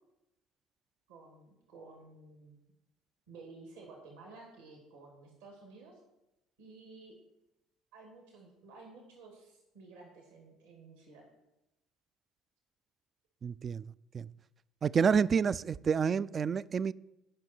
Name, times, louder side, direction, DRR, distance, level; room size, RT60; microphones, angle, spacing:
voice 1, 1.1-2.6 3.3-6.0 6.6-7.1 7.9-11.3, right 3 dB, 75° right, 2.4 m, -53 dB
voice 2, 13.4-14.3 14.8-16.9, right 6 dB, 35° right, 0.3 m, -29 dB
18.0 x 6.0 x 4.5 m
figure-of-eight pair, 60°, 0 cm